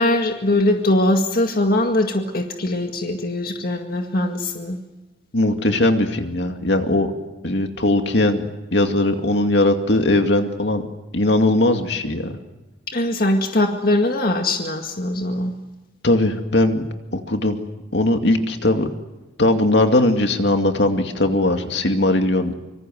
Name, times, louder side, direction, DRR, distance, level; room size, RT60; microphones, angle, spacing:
voice 1, 0.0-4.8 12.9-15.5, left 1 dB, 50° left, 3 dB, 2.0 m, -21 dB
voice 2, 5.3-7.1 7.4-8.4 8.7-10.8 11.1-12.4 16.0-16.9 17.1-17.6 17.9-18.9 19.4-22.5, left 1 dB, 70° left, 5 dB, 2.4 m, -19 dB
26.0 x 25.0 x 7.8 m, 1.1 s
head